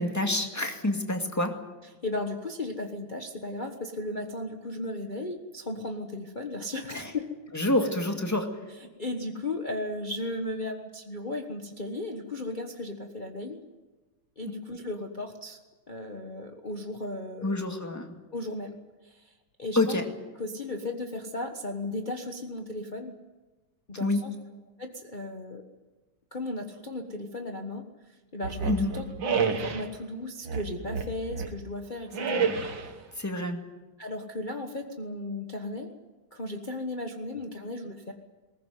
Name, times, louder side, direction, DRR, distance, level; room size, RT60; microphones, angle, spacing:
voice 1, 0.0-1.5 6.9-7.1 7.5-8.5 17.4-18.2 19.8-20.0 24.0-24.2 28.7-29.0 33.2-33.6, left 2 dB, 10° left, 4 dB, 2.0 m, -27 dB
voice 2, 2.0-7.3 8.8-13.6 14.4-15.6 15.9-17.6 18.3-18.7 19.0-19.3 19.6-20.0 20.4-23.1 23.9-24.3 24.8-25.6 26.3-29.0 29.4-32.5 32.9-33.0 34.0-35.9 36.3-38.1, left 2 dB, 25° left, 3 dB, 1.3 m, -35 dB
sound 1, 28.4-29.9 30.4-31.6 32.1-33.0, right 5 dB, 65° right, 2.3 m, -29 dB
21.0 x 19.0 x 9.4 m, 1.2 s
omnidirectional pair, 2.2 m